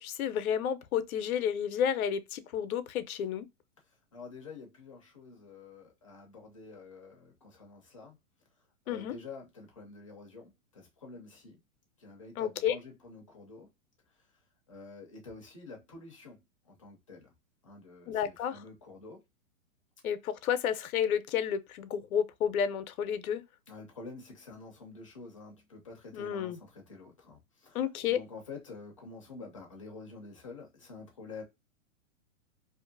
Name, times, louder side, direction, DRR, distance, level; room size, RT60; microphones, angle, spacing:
voice 1, 0.0-3.4 8.9-9.2 12.4-12.8 18.1-18.6 20.0-23.4 26.1-26.6 27.7-28.2, left 8 dB, 90° left, 0.6 m, -31 dB
voice 2, 4.1-8.2 8.9-11.6 12.0-13.7 14.7-16.4 16.7-17.3 17.6-19.2 23.7-31.4, left 4 dB, 25° left, 0.4 m, -48 dB
2.5 x 2.5 x 2.5 m
hypercardioid pair, 175°, 41 cm